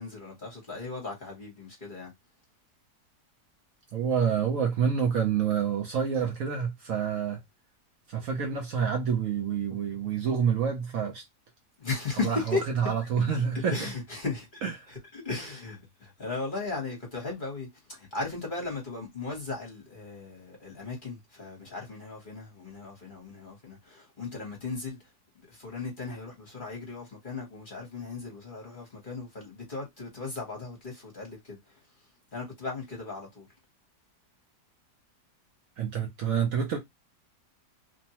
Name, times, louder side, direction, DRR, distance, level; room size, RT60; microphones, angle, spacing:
voice 1, 0.0-2.1 11.8-12.9 13.7-25.0 25.4-31.8 32.3-33.5, left 3 dB, 35° left, 1.1 m, -36 dB
voice 2, 3.9-7.4 8.1-11.2 12.2-13.9 14.6-14.7 35.8-36.8, right 7 dB, 65° right, 0.9 m, -28 dB
3.0 x 2.2 x 2.8 m
omnidirectional pair, 1.7 m